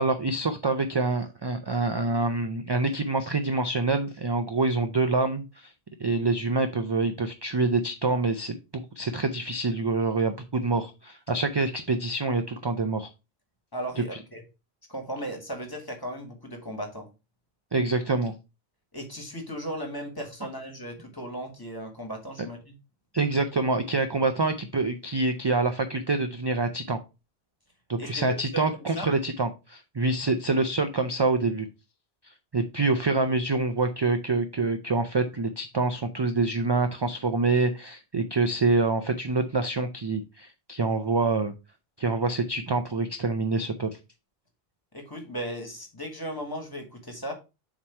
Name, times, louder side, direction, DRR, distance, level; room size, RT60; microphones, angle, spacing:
voice 1, 0.0-5.7 6.0-13.1 17.7-18.3 23.1-27.0 27.9-31.7 32.2-41.5 42.0-43.9, right 3 dB, 40° right, 8 dB, 0.4 m, -26 dB
voice 2, 13.7-14.4 14.9-17.1 18.9-22.8 28.0-28.7 28.9-29.1 44.9-47.3, equal, 20° left, 3 dB, 1.6 m, -36 dB
7.4 x 3.0 x 4.4 m, 0.28 s
omnidirectional pair, 1.1 m